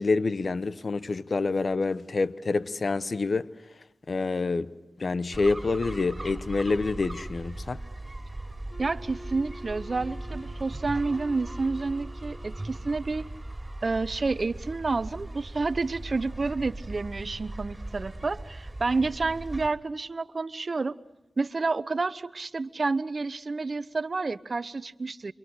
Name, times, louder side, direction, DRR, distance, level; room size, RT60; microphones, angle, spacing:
voice 1, 0.0-3.5 4.1-4.7 5.0-7.8, left 3 dB, 60° left, 0.9 m, -27 dB
sound 1, 5.3-19.7, right 2 dB, 25° right, 3.7 m, -39 dB
Wind instrument woodwind instrument, 8.7-12.8, left 1 dB, 45° left, 4.0 m, -47 dB
voice 2, 8.8-13.3 13.8-21.0 21.4-25.3, right 3 dB, 55° right, 0.8 m, -29 dB
28.5 x 24.5 x 6.6 m
cardioid pair, 40°, 0 cm